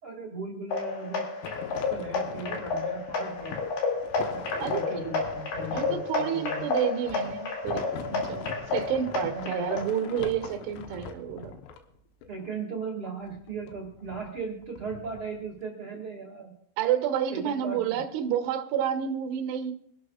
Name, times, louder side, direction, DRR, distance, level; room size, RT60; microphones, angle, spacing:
voice 1, 0.0-1.3 1.9-3.6 4.3-6.7 9.3-9.7 12.3-16.5 17.3-17.9, right 4 dB, 40° right, -3 dB, 2.1 m, -37 dB
sound 1, 0.7-9.8, left 4 dB, 60° left, 4.3 m, -31 dB
sound 2, 1.4-12.4 13.3-15.6, left 7 dB, 85° left, 3.7 m, -42 dB
voice 2, 4.6-5.1 5.7-11.5 16.8-19.7, right 9 dB, 70° right, 6 dB, 2.9 m, -30 dB
25.5 x 11.5 x 2.4 m, 0.67 s
omnidirectional pair, 5.6 m